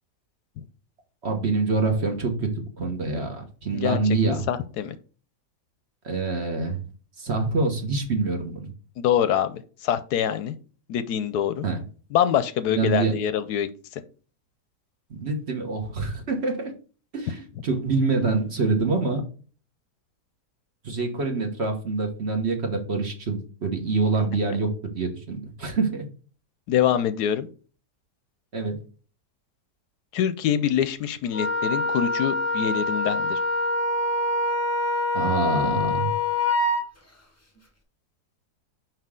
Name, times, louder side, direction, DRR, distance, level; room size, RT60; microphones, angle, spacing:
voice 1, 1.2-4.4 6.0-6.8 7.2-8.7 11.6-11.8 12.7-13.1 15.1-16.7 17.1-19.2 20.8-24.7 24.9-26.0 28.5-28.7 35.1-36.1, right 3 dB, 45° right, 4 dB, 1.3 m, -26 dB
voice 2, 3.7-4.9 9.0-10.5 10.9-11.7 12.1-13.7 26.7-27.5 30.1-33.4, left 9 dB, 75° left, 12 dB, 1.1 m, -25 dB
Wind instrument woodwind instrument, 31.3-36.8, left 2 dB, 15° left, 0.7 m, -25 dB
5.7 x 5.2 x 3.6 m, 0.38 s
omnidirectional pair, 1.8 m